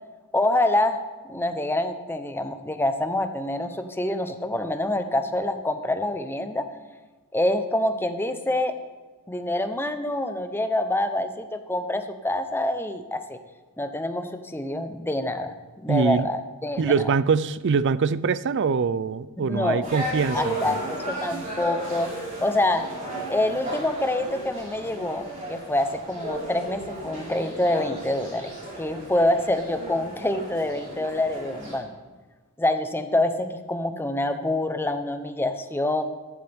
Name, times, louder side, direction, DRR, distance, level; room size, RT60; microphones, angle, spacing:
voice 1, 0.3-1.0 1.2-6.7 7.3-8.7 9.3-13.4 13.8-17.1 19.5-19.9 20.3-22.1 22.4-22.8 23.3-28.5 28.8-31.9 32.6-36.0, left 1 dB, 10° left, 8 dB, 0.8 m, -26 dB
voice 2, 15.9-16.3 16.8-20.7, right 5 dB, 55° right, 17 dB, 0.4 m, -23 dB
sound 1, 19.8-31.8, right 1 dB, 35° right, 4.7 m, -35 dB
14.5 x 12.0 x 3.6 m, 1.3 s
head